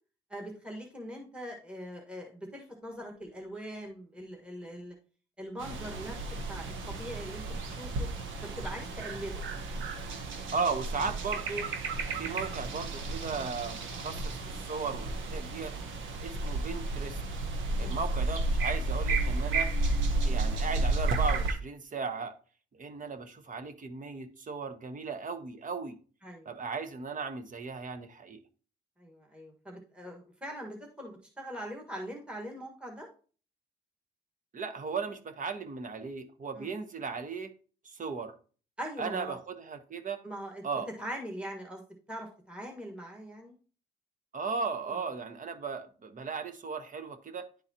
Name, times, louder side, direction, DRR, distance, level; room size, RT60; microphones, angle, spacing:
voice 1, 0.3-4.9 5.4-6.2 6.5-8.1 8.4-9.4 17.8-18.0 26.2-26.5 29.0-33.1 36.5-36.7 38.8-39.4 40.2-40.6 41.0-41.8 42.1-43.5, equal, 5° right, 1.5 m, -42 dB
sound 1, 5.6-21.5, right 2 dB, 80° right, 1.0 m, -32 dB
voice 2, 10.5-11.7 12.2-15.7 16.2-17.2 17.8-19.7 20.2-22.3 22.7-26.0 26.4-28.4 34.5-37.5 37.8-38.3 39.0-40.2 40.6-40.9 44.3-47.5, right 4 dB, 40° right, 0.9 m, -36 dB
10.0 x 3.9 x 2.8 m
cardioid pair, 90°, 20 cm